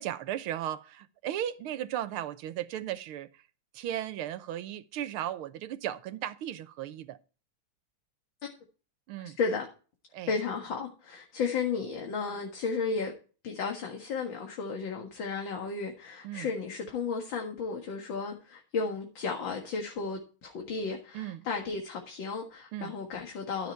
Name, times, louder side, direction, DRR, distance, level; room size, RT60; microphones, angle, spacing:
voice 1, 0.0-3.4 3.7-7.2 9.1-9.4 10.1-10.3 16.2-16.5 21.1-21.5 22.7-22.9, right 11 dB, 85° right, 1.7 m, -36 dB
voice 2, 9.2-9.7 10.3-13.1 13.4-23.7, left 5 dB, 65° left, 2.5 m, -33 dB
13.0 x 7.0 x 4.5 m
omnidirectional pair, 2.3 m